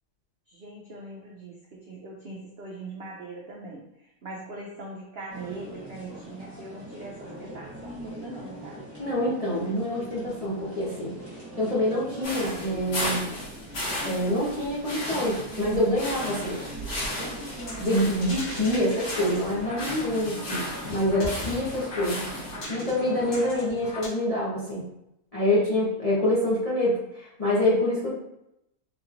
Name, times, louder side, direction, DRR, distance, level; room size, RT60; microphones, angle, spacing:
voice 1, 0.5-3.8 4.2-8.8, right 2 dB, 70° right, -1 dB, 0.5 m, -41 dB
sound 1, 5.3-23.6, right 1 dB, 15° right, 1.0 m, -41 dB
voice 2, 9.0-11.1 11.6-13.3 14.0-16.6 17.7-22.3 22.7-24.8 25.3-28.1, left 1 dB, 35° left, -7 dB, 0.6 m, -26 dB
sound 2, 12.2-22.6, left 1 dB, 80° left, 2.2 m, -35 dB
sound 3, 17.5-24.1, left 2 dB, 65° left, 1.8 m, -39 dB
4.1 x 3.0 x 2.4 m, 0.82 s
omnidirectional pair, 1.7 m